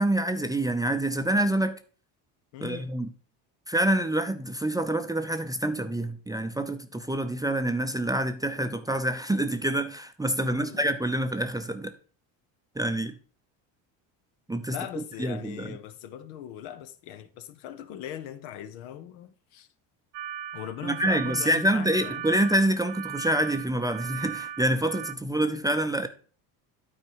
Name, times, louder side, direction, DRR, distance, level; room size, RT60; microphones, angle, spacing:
voice 1, 0.0-1.7 2.6-3.1 3.7-11.9 12.8-13.1 14.5-15.8 20.8-26.1, right 1 dB, 10° right, 0.6 m, -27 dB
voice 2, 2.5-2.9 10.4-10.9 14.7-19.7 20.5-22.2, left 11 dB, 75° left, 0.9 m, -40 dB
sound 1, 20.1-25.1, right 10 dB, 60° right, 0.6 m, -38 dB
9.1 x 4.4 x 4.6 m
supercardioid pair, 80°, 49 cm